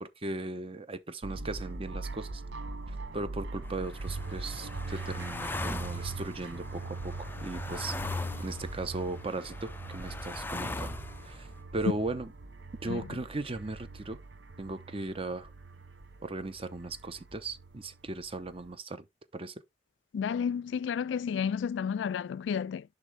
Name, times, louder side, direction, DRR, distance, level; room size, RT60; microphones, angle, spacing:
voice 1, 0.0-2.4 2.9-7.9 8.4-11.0 11.2-11.5 11.7-12.3 12.8-14.2 14.6-15.5 16.2-19.0 19.3-19.5, right 2 dB, 30° right, 0.8 m, -37 dB
sound 1, 1.2-18.8, right 3 dB, 80° right, 0.9 m, -42 dB
sound 2, 3.6-11.5, left 2 dB, 10° left, 0.4 m, -40 dB
voice 2, 20.1-22.8, left 7 dB, 85° left, 0.3 m, -31 dB
10.5 x 3.6 x 3.3 m
head